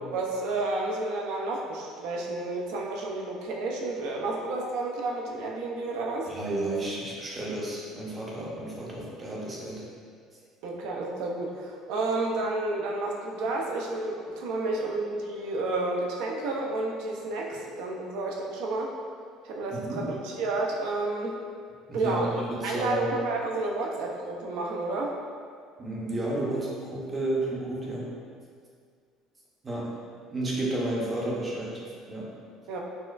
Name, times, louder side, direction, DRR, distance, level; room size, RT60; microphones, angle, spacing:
voice 1, 0.1-6.3 10.6-18.9 19.4-21.4 21.9-25.2 32.7-32.8, right 2 dB, 75° right, -1 dB, 0.4 m, -31 dB
voice 2, 6.3-9.9 19.7-20.1 21.9-23.1 25.8-28.1 29.6-29.9 30.3-31.8 32.1-32.3, right 1 dB, 20° right, -4 dB, 0.5 m, -32 dB
4.1 x 2.3 x 2.3 m, 2.1 s
cardioid pair, 160°, 0 cm